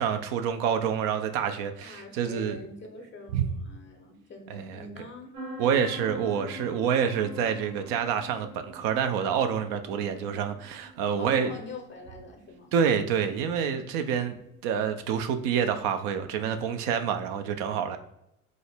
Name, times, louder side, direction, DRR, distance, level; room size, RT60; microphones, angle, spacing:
voice 1, 0.0-2.6 3.3-3.5 4.5-4.9 5.6-11.6 12.7-18.0, right 7 dB, 55° right, 8 dB, 0.5 m, -27 dB
voice 2, 1.6-5.3 11.2-12.7, left 3 dB, 30° left, 3 dB, 0.6 m, -44 dB
sound 1, 5.3-16.8, equal, 90° right, 0.7 m, -46 dB
3.6 x 2.0 x 3.3 m, 0.82 s
hypercardioid pair, 60°, 40 cm